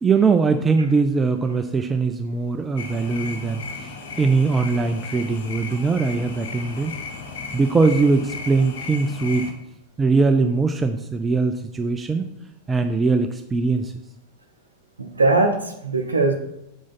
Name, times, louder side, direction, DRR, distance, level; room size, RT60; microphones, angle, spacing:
voice 1, 0.0-6.9 7.5-9.5 10.0-12.3 12.7-13.9, right 4 dB, 15° right, 6 dB, 0.4 m, -21 dB
sound 1, 2.8-9.5, left 4 dB, 60° left, 1.0 m, -35 dB
voice 2, 15.0-16.3, right 3 dB, 75° right, 3 dB, 0.6 m, -20 dB
7.0 x 4.9 x 3.9 m, 0.84 s
figure-of-eight pair, 90°, 0 cm